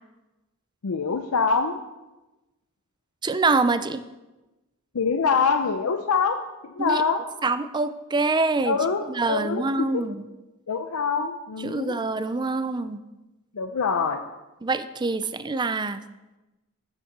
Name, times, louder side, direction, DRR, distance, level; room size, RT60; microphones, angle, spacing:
voice 1, 0.8-1.8 4.9-7.2 8.6-10.0 10.7-12.0 13.5-14.2, left 5 dB, 90° left, 7 dB, 0.6 m, -25 dB
voice 2, 3.2-4.0 6.8-7.0 7.4-8.8 9.1-10.2 11.6-13.0 14.6-16.0, right 3 dB, 20° right, 12 dB, 0.4 m, -25 dB
7.4 x 7.3 x 6.6 m, 1.1 s
head